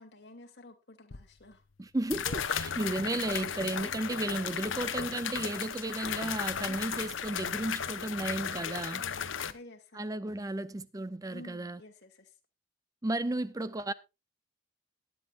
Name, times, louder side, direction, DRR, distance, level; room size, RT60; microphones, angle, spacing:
voice 1, 0.0-1.6 6.7-6.8 8.9-10.4 11.3-12.3, left 1 dB, 55° left, 2.3 m, -52 dB
sound 1, 1.1-1.2 2.1-9.5, left 7 dB, 70° left, 0.9 m, -35 dB
voice 2, 1.8-9.0 9.9-11.8 13.0-13.9, right 2 dB, 15° right, 0.5 m, -34 dB
19.0 x 9.9 x 2.4 m
head